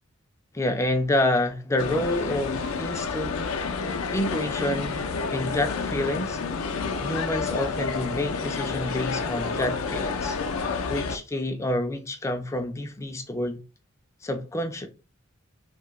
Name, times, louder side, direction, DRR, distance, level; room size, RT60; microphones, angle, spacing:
voice 1, 0.5-3.4 4.1-5.0 5.3-6.4 7.0-10.4 10.9-13.6 14.2-14.9, left 1 dB, 15° left, 0.3 m, -28 dB
sound 1, 1.8-11.2, left 4 dB, 85° left, 0.4 m, -29 dB
2.7 x 2.2 x 3.0 m
head